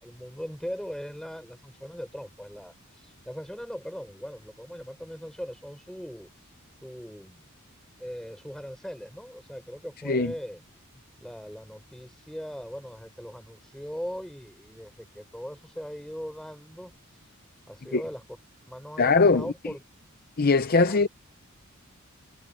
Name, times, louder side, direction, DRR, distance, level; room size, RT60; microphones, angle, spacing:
voice 1, 0.0-2.7 3.0-6.3 6.8-7.5 8.0-10.6 10.9-16.9 17.7-18.2 18.7-19.8 20.9-21.0, equal, ahead, 5.7 m, -39 dB
voice 2, 19.0-19.5 20.4-21.1, left 4 dB, 45° left, 0.6 m, -21 dB
head